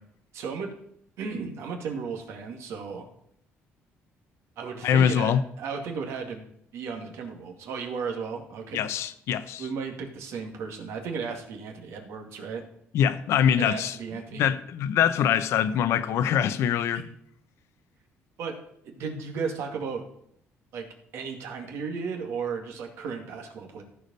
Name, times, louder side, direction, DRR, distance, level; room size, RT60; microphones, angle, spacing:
voice 1, 0.3-0.7 1.2-3.0 4.6-8.9 9.6-12.7 13.6-14.6 16.9-17.0 18.4-18.6 18.8-20.0 20.7-20.9 21.1-23.8, right 5 dB, 75° right, 2.2 m, -35 dB
voice 2, 4.8-5.4 8.7-9.7 12.9-14.0 14.3-17.0, left 9 dB, 75° left, 0.8 m, -23 dB
14.5 x 5.0 x 5.4 m
cardioid pair, 115°, 5 cm